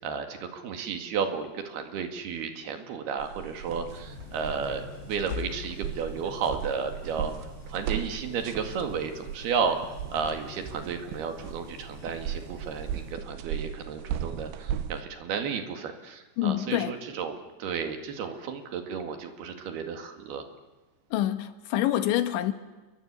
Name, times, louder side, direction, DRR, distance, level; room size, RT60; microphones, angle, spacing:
voice 1, 0.0-7.3 7.7-9.8 10.1-20.4, right 6 dB, 65° right, 4.0 m, -33 dB
sound 1, 3.2-15.0, right 9 dB, 85° right, 3.7 m, -37 dB
sound 2, 3.9-13.1, left 6 dB, 70° left, 4.2 m, -45 dB
voice 2, 16.4-17.0 21.1-22.5, left 13 dB, 90° left, 3.8 m, -26 dB
29.0 x 23.5 x 8.3 m
omnidirectional pair, 5.2 m